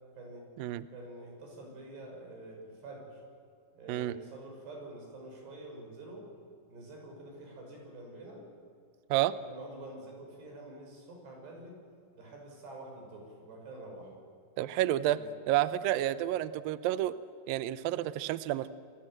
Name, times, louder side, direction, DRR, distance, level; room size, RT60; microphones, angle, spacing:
voice 1, 0.2-0.5 0.9-3.2 3.7-6.3 6.7-8.5 9.5-11.8 12.2-14.2 15.1-15.3 15.7-16.2, right 2 dB, 70° right, 1 dB, 8.1 m, -47 dB
voice 2, 14.6-15.2 15.5-17.1 17.5-18.7, right 14 dB, 85° right, 14 dB, 2.0 m, -30 dB
28.5 x 21.5 x 7.7 m, 2.4 s
omnidirectional pair, 5.1 m